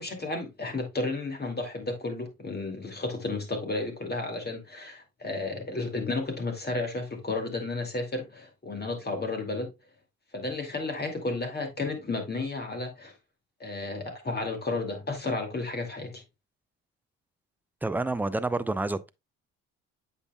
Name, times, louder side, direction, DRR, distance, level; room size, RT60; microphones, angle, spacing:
voice 1, 0.0-9.7 10.3-13.1 13.6-16.2, left 3 dB, 30° left, 2.4 m, -32 dB
voice 2, 17.8-19.1, right 2 dB, 5° right, 0.5 m, -28 dB
8.1 x 5.5 x 2.3 m
hypercardioid pair, 55°, 32 cm